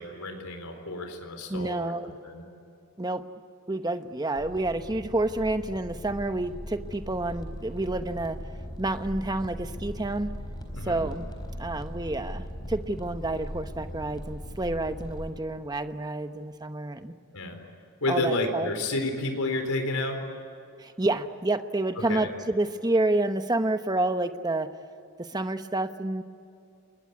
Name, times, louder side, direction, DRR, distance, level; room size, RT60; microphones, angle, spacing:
voice 1, 0.0-1.9 2.2-2.4 10.7-11.0 17.3-17.6 18.0-20.2 22.1-22.3, left 2 dB, 85° left, 4 dB, 4.2 m, -30 dB
voice 2, 1.5-2.2 3.0-3.2 3.7-8.4 8.8-10.3 10.8-11.3 11.6-17.1 18.1-18.7 20.8-24.7 25.2-26.2, right 2 dB, 20° right, 9 dB, 1.0 m, -29 dB
sound 1, 4.3-15.3, equal, 20° left, 4.0 m, -39 dB
28.5 x 21.5 x 9.6 m, 2.7 s
head